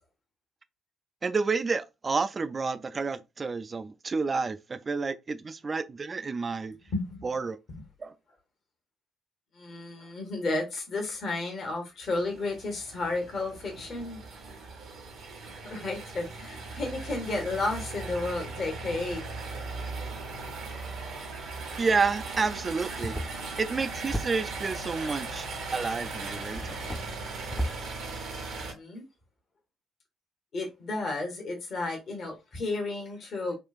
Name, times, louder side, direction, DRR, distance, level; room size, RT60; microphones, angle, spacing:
voice 1, 1.2-6.7 7.2-7.6 8.0-8.1 21.8-23.2 23.6-26.8, right 4 dB, 35° right, 0.3 m, -30 dB
voice 2, 6.9-7.2 9.5-14.2 15.6-19.2 28.6-29.0 30.5-33.5, left 2 dB, 50° left, 1.0 m, -32 dB
sound 1, 12.0-28.7, right 3 dB, 60° right, 0.7 m, -38 dB
sound 2, 22.9-24.8 25.8-25.9 26.5-27.9, equal, 15° left, 0.6 m, -36 dB
3.7 x 2.3 x 2.4 m
figure-of-eight pair, 45°, 0 cm